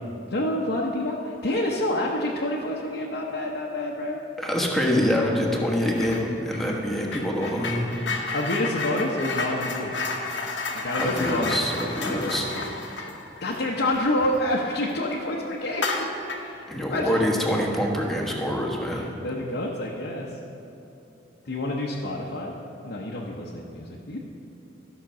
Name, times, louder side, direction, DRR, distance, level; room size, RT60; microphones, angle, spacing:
voice 1, 0.3-4.2 8.3-10.0 10.7-11.6 12.0-12.7 13.4-16.1 16.4-17.2 18.9-20.3 21.4-22.6 22.8-24.2, left 1 dB, 65° left, -3 dB, 0.9 m, -28 dB
voice 2, 4.4-7.9 11.0-12.5 16.7-19.1, equal, ahead, -2 dB, 1.3 m, -25 dB
sound 1, 5.9-6.3 6.5-14.7 15.0-15.2 15.7-16.6, left 3 dB, 85° left, 1.1 m, -32 dB
13.0 x 5.9 x 6.1 m, 2.9 s
head